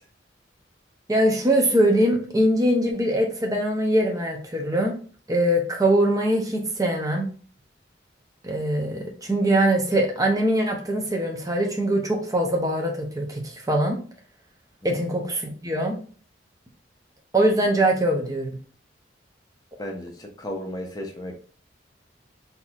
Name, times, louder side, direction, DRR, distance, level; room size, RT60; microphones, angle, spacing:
voice 1, 1.1-5.0 5.3-7.3 8.4-14.0 14.8-16.0 17.3-18.6, right 1 dB, 20° right, 1 dB, 0.7 m, -22 dB
voice 2, 19.8-21.3, left 1 dB, 20° left, 2 dB, 0.7 m, -34 dB
4.0 x 2.8 x 2.4 m, 0.41 s
head